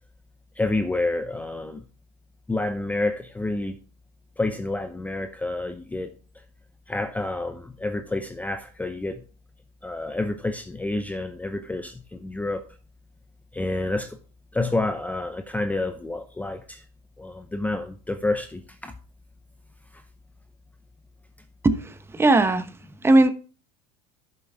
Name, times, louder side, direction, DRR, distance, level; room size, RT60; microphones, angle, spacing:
voice 1, 0.6-1.8 2.5-3.8 4.4-6.1 6.9-9.2 9.8-12.6 13.5-14.2 14.5-16.8 17.2-18.9, left 2 dB, 10° left, 0.7 m, -29 dB
voice 2, 21.6-22.7 23.0-23.3, right 2 dB, 10° right, 1.0 m, -18 dB
11.5 x 7.2 x 3.5 m
supercardioid pair, 115°, 20 cm